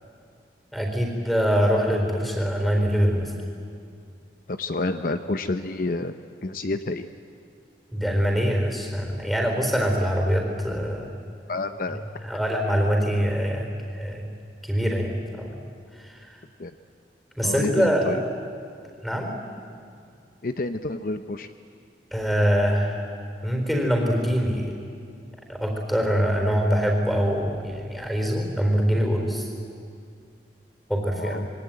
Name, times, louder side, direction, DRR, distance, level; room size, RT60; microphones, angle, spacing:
voice 1, 0.7-3.3 7.9-11.1 12.3-14.3 14.6-15.6 16.0-16.2 17.4-18.2 19.0-19.3 22.1-23.1 23.4-24.7 25.5-29.5 30.9-31.5, equal, ahead, 2 dB, 4.2 m, -24 dB
voice 2, 4.5-6.1 6.4-7.1 11.4-12.0 12.3-12.4 16.6-16.7 17.4-18.2 20.4-21.5 31.1-31.5, left 2 dB, 50° left, 9 dB, 0.7 m, -29 dB
26.5 x 22.0 x 9.1 m, 2.3 s
head